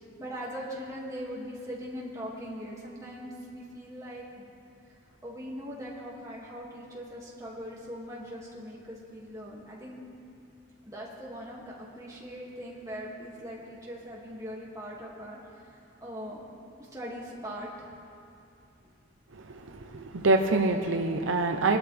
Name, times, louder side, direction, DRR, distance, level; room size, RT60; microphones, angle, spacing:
voice 1, 0.0-4.5 4.9-5.0 5.2-10.0 10.8-16.4 16.8-17.9 18.8-18.9, equal, 15° right, -4 dB, 2.3 m, -41 dB
voice 2, 19.4-21.8, right 3 dB, 75° right, 4 dB, 0.8 m, -26 dB
22.5 x 12.5 x 3.5 m, 2.6 s
head